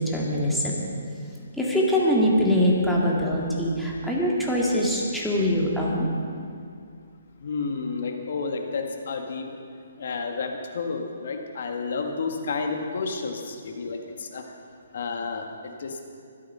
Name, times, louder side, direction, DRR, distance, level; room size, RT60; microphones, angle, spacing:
voice 1, 0.1-0.8 1.6-6.1, equal, ahead, -5 dB, 2.2 m, -23 dB
voice 2, 7.4-9.5 10.0-14.5 14.9-16.0, left 4 dB, 60° left, 3 dB, 1.9 m, -31 dB
24.0 x 8.5 x 5.7 m, 2.4 s
hypercardioid pair, 160°, 0 cm